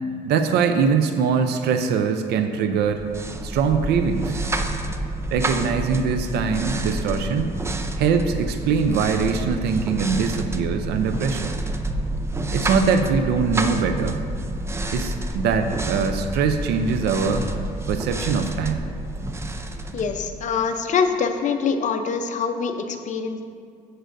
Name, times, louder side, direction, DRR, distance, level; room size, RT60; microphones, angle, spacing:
voice 1, 0.2-3.0 3.4-4.4 5.3-7.6 8.0-11.5 12.5-14.2 14.9-17.5 17.9-18.9, right 6 dB, 75° right, 7 dB, 0.5 m, -22 dB
sound 1, 2.8-20.7, right 1 dB, 15° right, 0.5 m, -29 dB
voice 2, 19.9-23.4, left 5 dB, 45° left, 6 dB, 0.7 m, -24 dB
11.0 x 7.9 x 2.6 m, 2.2 s
cardioid pair, 110°, 17 cm